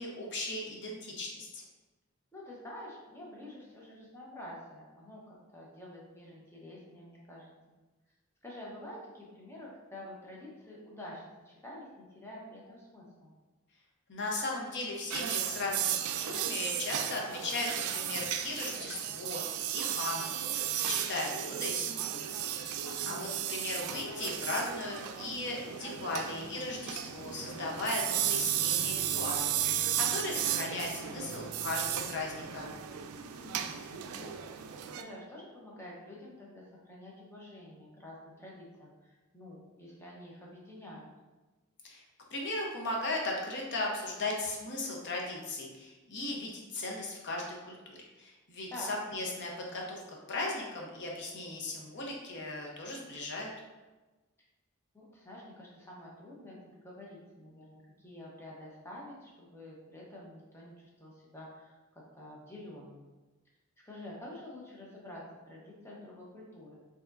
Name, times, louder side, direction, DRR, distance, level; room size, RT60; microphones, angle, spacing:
voice 1, 0.0-1.6 14.1-19.4 19.7-22.3 22.6-32.7 41.8-42.0 42.3-50.0 50.3-53.5, left 2 dB, 55° left, -1 dB, 0.8 m, -37 dB
voice 2, 2.3-7.5 8.4-13.3 22.8-23.3 33.3-34.5 34.9-41.1 48.7-48.9 54.9-63.1 63.8-66.8, left 1 dB, 10° left, -4 dB, 0.8 m, -48 dB
sound 1, 15.1-35.0, right 10 dB, 85° right, 0.3 m, -34 dB
4.7 x 2.8 x 2.5 m, 1.2 s
head